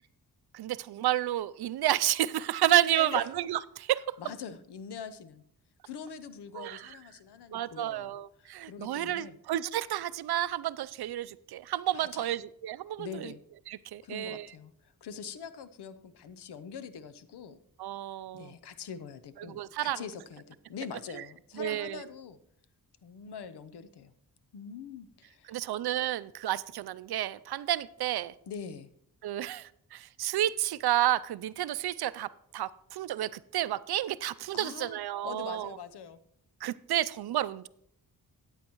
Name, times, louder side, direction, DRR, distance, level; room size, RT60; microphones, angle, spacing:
voice 1, 0.5-3.2 3.5-4.0 6.5-6.9 7.5-13.3 13.7-14.5 17.8-18.5 19.5-20.0 21.1-21.2 21.6-22.0 25.5-28.3 29.2-32.3 32.5-35.7 36.6-37.7, right 13 dB, 75° right, 17 dB, 0.5 m, -31 dB
voice 2, 2.9-3.3 4.2-5.4 5.8-9.4 11.9-12.4 13.0-13.4 14.0-17.6 18.3-22.4 23.0-24.1 24.5-25.6 28.5-28.9 34.5-36.2, left 7 dB, 80° left, 12 dB, 0.8 m, -43 dB
14.0 x 9.0 x 3.0 m, 0.71 s
wide cardioid pair, 125°, 39 cm